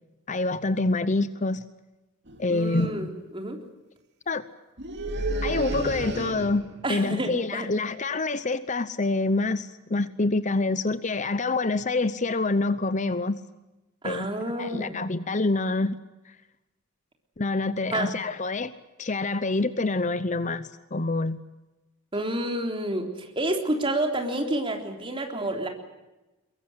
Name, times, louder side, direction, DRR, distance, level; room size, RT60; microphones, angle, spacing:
voice 1, 0.3-1.6 2.4-3.1 4.3-4.4 5.4-13.4 14.0-14.3 14.6-16.0 17.4-18.7 19.0-21.4, left 3 dB, 35° left, 14 dB, 0.8 m, -26 dB
sound 1, 2.3-2.4 2.7-3.1 4.8-6.8, right 1 dB, 55° right, 2.7 m, -31 dB
voice 2, 2.5-3.6 6.8-7.7 14.0-15.0 17.9-18.1 22.1-25.7, right 1 dB, 25° right, 3 dB, 3.6 m, -29 dB
22.5 x 22.5 x 8.0 m, 1.1 s
head